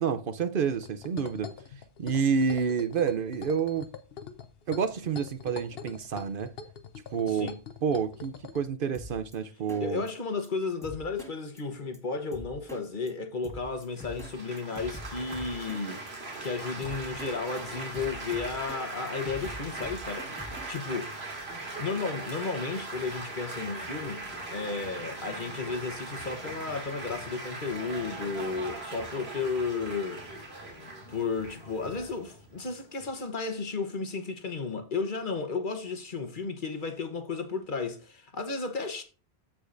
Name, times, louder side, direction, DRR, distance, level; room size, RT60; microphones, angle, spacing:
voice 1, 0.0-1.5 2.0-3.9 4.7-6.5 7.1-7.5 7.8-10.0, right 6 dB, 60° right, 0.8 m, -29 dB
sound 1, 0.7-8.6, left 6 dB, 70° left, 1.1 m, -44 dB
voice 2, 7.3-7.6 9.8-20.3 20.7-21.2 21.8-30.2 31.1-39.0, left 4 dB, 50° left, 1.2 m, -33 dB
Drum kit, 8.9-9.4 9.7-9.8 10.1-10.2 10.4-10.5 10.8-11.3 11.6-11.7 11.9-12.0 12.3-12.8 13.1-13.2 13.4-14.3 14.6-16.1 16.4-16.5 16.8-17.3 17.6-18.8 19.1-20.8, equal, 5° left, 1.8 m, -44 dB
Laughter / Applause / Chatter, 14.0-33.1, right 2 dB, 85° right, 2.6 m, -40 dB
15.0 x 5.0 x 2.6 m
omnidirectional pair, 1.1 m